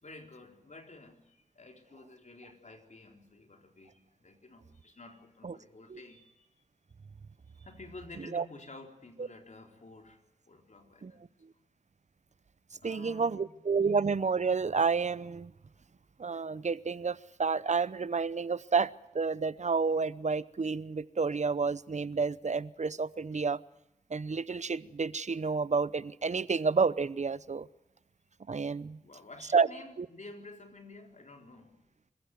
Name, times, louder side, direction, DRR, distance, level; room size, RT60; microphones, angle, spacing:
voice 1, 0.0-6.5 7.5-10.2 10.5-11.2 12.8-13.5 29.0-31.8, left 2 dB, 60° left, 4.0 m, -51 dB
voice 2, 12.8-15.5 16.2-23.6 24.1-27.7 28.5-29.0 29.5-29.7 30.0-30.1, right 5 dB, 55° right, 0.8 m, -30 dB
26.0 x 15.5 x 9.3 m
cardioid pair, 50°, 14 cm